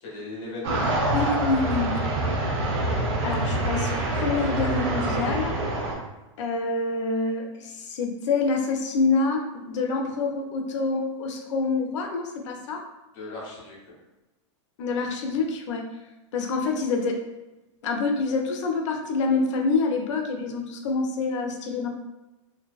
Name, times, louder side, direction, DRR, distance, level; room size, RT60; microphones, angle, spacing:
voice 1, 0.0-2.2 13.1-13.8, left 2 dB, 50° left, -3 dB, 0.9 m, -38 dB
sound 1, 0.6-5.9, right 1 dB, 65° right, 0.7 m, -26 dB
voice 2, 1.1-2.0 3.2-5.5 6.4-12.8 14.8-15.8 16.3-17.2 17.8-21.9, left 3 dB, 70° left, 2 dB, 0.5 m, -26 dB
2.5 x 2.1 x 2.3 m, 1.0 s
supercardioid pair, 140°, 16 cm